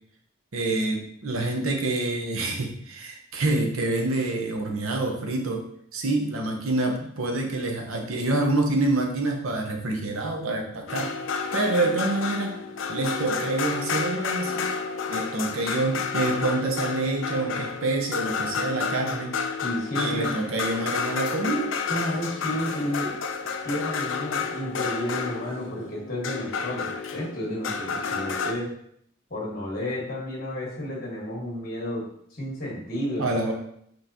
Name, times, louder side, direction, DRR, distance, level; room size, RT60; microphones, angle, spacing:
voice 1, 0.5-11.1 11.5-12.5 12.9-14.7 15.1-19.3 19.9-21.7 33.2-33.5, right 2 dB, 90° right, 2 dB, 0.8 m, -27 dB
sound 1, 10.9-28.5, left 5 dB, 65° left, 0.4 m, -30 dB
voice 2, 19.6-20.4 21.9-23.2 23.6-28.7 29.3-33.3, left 1 dB, 45° left, -4 dB, 1.5 m, -31 dB
5.2 x 3.1 x 2.7 m, 0.69 s
head